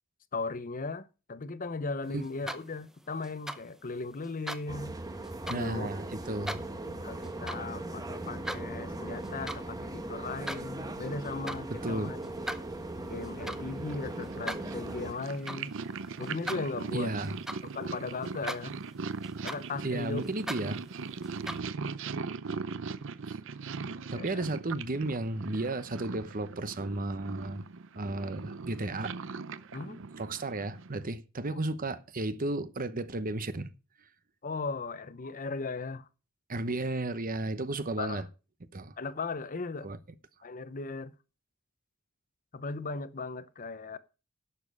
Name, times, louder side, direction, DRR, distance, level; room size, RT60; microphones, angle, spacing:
voice 1, 0.3-5.0 5.5-5.9 7.0-12.2 13.1-15.7 16.2-17.1 17.6-18.8 19.4-20.2 24.1-24.4 29.7-30.0 31.5-31.7 34.4-36.1 38.0-38.2 39.0-39.9 40.4-41.1 42.5-44.0, left 3 dB, 40° left, 0.7 m, -37 dB
sound 1, 2.2-2.9 3.2-3.6 4.2-4.6 5.2-5.6 6.2-6.6 7.2-7.6 8.0-8.6 9.1-9.7 10.0-10.6 11.2-11.6 12.2-18.0 18.2-18.9 19.2-21.6, right 1 dB, ahead, 0.7 m, -41 dB
sound 2, 4.7-15.1, right 2 dB, 20° right, 1.1 m, -39 dB
voice 2, 5.5-6.6 11.7-12.1 16.9-17.4 19.8-20.8 24.1-27.6 28.0-29.2 30.2-33.7 36.5-38.3 38.7-38.9 39.8-40.0, right 2 dB, 40° right, 1.0 m, -33 dB
Purr, 13.4-31.1, right 4 dB, 65° right, 0.6 m, -40 dB
11.0 x 7.2 x 5.4 m
head